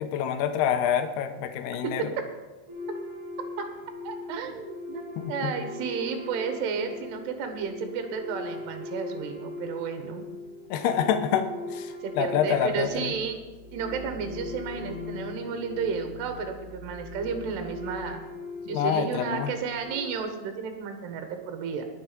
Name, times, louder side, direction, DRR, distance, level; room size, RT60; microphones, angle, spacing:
voice 1, 0.0-2.1 5.2-5.5 10.7-13.1 18.7-19.5, left 8 dB, 90° left, 8 dB, 2.8 m, -27 dB
sound 1, 2.7-20.2, left 3 dB, 40° right, 4.3 m, -40 dB
voice 2, 4.0-10.2 12.0-13.4 13.7-18.2 18.7-21.9, right 6 dB, 80° right, 5 dB, 3.3 m, -32 dB
19.5 x 6.9 x 5.1 m, 1.2 s
omnidirectional pair, 4.7 m